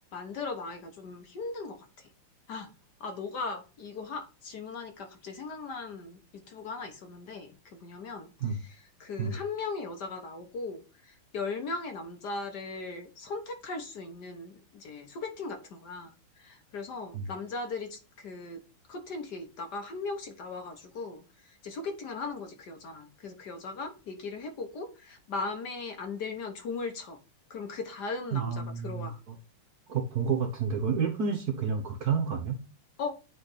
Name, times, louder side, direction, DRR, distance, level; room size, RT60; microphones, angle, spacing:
voice 1, 0.1-2.1 2.5-2.7 3.0-18.6 18.9-27.2 27.5-29.2 33.0-33.1, left 4 dB, 55° left, 1.5 m, -38 dB
voice 2, 28.3-29.3 29.9-32.6, right 6 dB, 55° right, 1.2 m, -30 dB
9.1 x 3.4 x 4.1 m
omnidirectional pair, 2.3 m